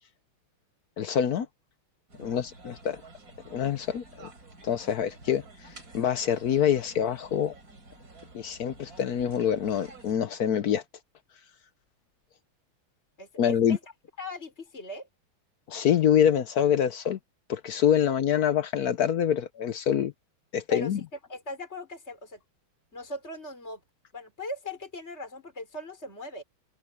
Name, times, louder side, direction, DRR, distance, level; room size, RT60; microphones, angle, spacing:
voice 1, 1.0-1.5 2.2-3.0 3.5-4.3 4.6-5.4 5.9-7.5 8.3-10.8 13.4-13.8 15.7-17.2 17.5-20.1 20.5-21.0, left 9 dB, 65° left, 1.0 m, -25 dB
sound 1, 2.1-10.2, right 3 dB, 45° right, 4.9 m, -50 dB
voice 2, 13.2-13.8 14.2-15.1 18.1-18.2 20.7-20.9 21.3-22.4 22.9-23.8 24.1-26.4, left 1 dB, 30° left, 5.9 m, -39 dB
open air
omnidirectional pair, 2.3 m